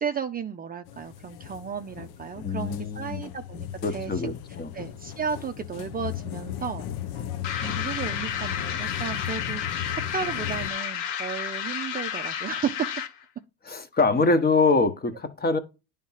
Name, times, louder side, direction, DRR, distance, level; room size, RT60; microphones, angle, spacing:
voice 1, 0.0-4.1 4.7-7.2 7.6-9.6 9.9-13.0, right 6 dB, 20° right, 0.6 m, -34 dB
sound 1, 0.9-10.7, left 11 dB, 65° left, 1.0 m, -37 dB
voice 2, 2.4-3.2 3.8-4.7 13.6-15.6, left 3 dB, 20° left, 1.3 m, -24 dB
sound 2, 7.4-13.2, left 9 dB, 85° left, 1.5 m, -31 dB
10.0 x 3.6 x 5.7 m
cardioid pair, 125°, 41 cm